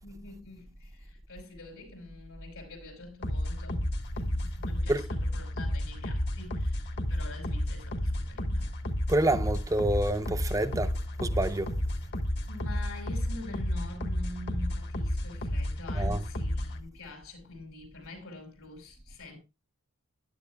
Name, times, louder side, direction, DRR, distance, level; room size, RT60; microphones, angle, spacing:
voice 1, 0.0-8.7 12.5-19.4, left 2 dB, 90° left, 5.6 m, -45 dB
sound 1, 3.2-16.8, left 1 dB, 50° left, 1.3 m, -32 dB
voice 2, 9.1-11.0 11.2-11.7 16.0-16.2, right 1 dB, 15° right, 0.5 m, -27 dB
15.0 x 11.0 x 2.2 m
head